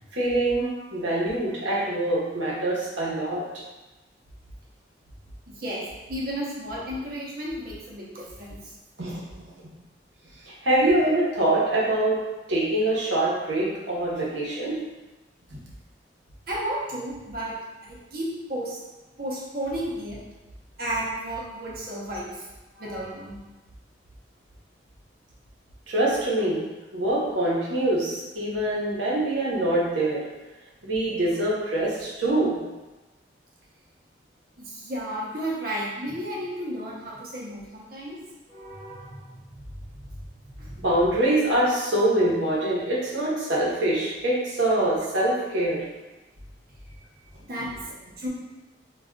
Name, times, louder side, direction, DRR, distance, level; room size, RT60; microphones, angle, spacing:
voice 1, 0.1-3.4 9.0-9.4 10.5-12.2 12.5-14.8 15.5-15.6 22.9-23.0 25.9-26.6 26.9-30.2 30.8-32.6 38.5-39.1 40.8-45.8, right 1 dB, 85° right, -6 dB, 0.9 m, -24 dB
voice 2, 5.5-8.7 11.1-11.2 16.5-17.6 17.8-18.8 19.2-20.2 20.8-22.5 22.8-23.4 34.6-38.2 38.7-39.4 40.6-40.8 47.4-47.7 48.2-48.3, right 1 dB, 55° right, -5 dB, 0.7 m, -33 dB
2.4 x 2.2 x 3.6 m, 1.1 s
head